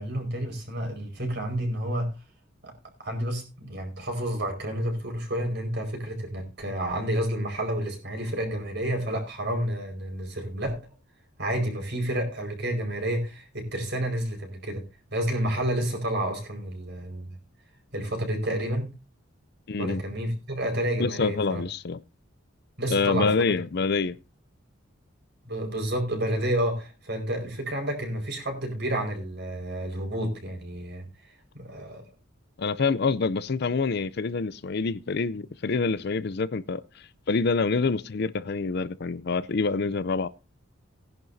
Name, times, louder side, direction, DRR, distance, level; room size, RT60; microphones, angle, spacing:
voice 1, 0.0-2.1 2.6-2.7 3.0-10.8 11.4-14.8 15.1-17.3 17.9-18.9 19.8-21.6 22.8-23.3 25.4-31.0 31.5-32.0, right 1 dB, 55° right, 4.9 m, -30 dB
voice 2, 19.7-20.0 21.0-22.0 22.9-24.2 32.6-36.8 37.3-40.3, left 4 dB, 55° left, 0.5 m, -26 dB
18.5 x 10.5 x 2.7 m
head